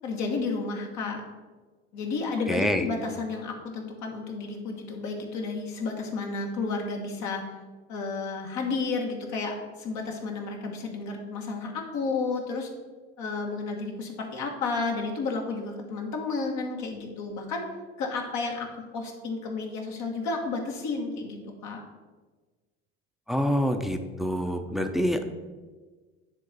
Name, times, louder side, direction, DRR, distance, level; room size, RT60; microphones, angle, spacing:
voice 1, 0.0-1.2 1.9-7.4 7.9-12.7 13.2-17.6 18.0-18.7 18.9-21.8, left 4 dB, 60° left, 1 dB, 1.3 m, -32 dB
voice 2, 2.5-2.9 23.3-25.2, equal, ahead, 6 dB, 0.6 m, -26 dB
9.8 x 3.4 x 4.0 m, 1.3 s
hypercardioid pair, 65°, 32 cm